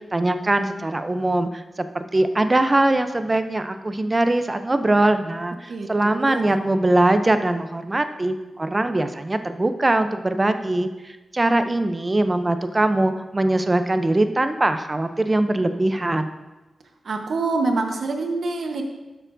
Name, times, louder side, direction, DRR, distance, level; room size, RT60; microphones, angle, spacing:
voice 1, 0.0-16.3, right 2 dB, 25° right, 9 dB, 0.5 m, -22 dB
voice 2, 5.7-6.6 17.0-18.8, right 3 dB, 70° right, 4 dB, 1.0 m, -26 dB
12.5 x 6.7 x 2.6 m, 1.1 s
cardioid pair, 80°, 0 cm